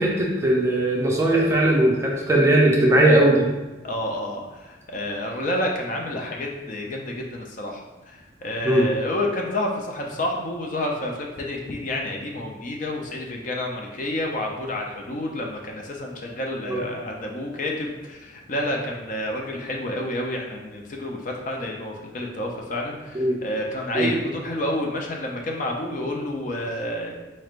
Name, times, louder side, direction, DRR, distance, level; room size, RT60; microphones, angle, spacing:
voice 1, 0.0-3.5 8.6-8.9 16.7-16.8 23.1-23.4 23.9-24.1, right 1 dB, 15° right, -3 dB, 0.5 m, -19 dB
voice 2, 3.8-27.1, left 1 dB, 40° left, 0 dB, 0.5 m, -29 dB
4.3 x 3.2 x 2.4 m, 1.1 s
head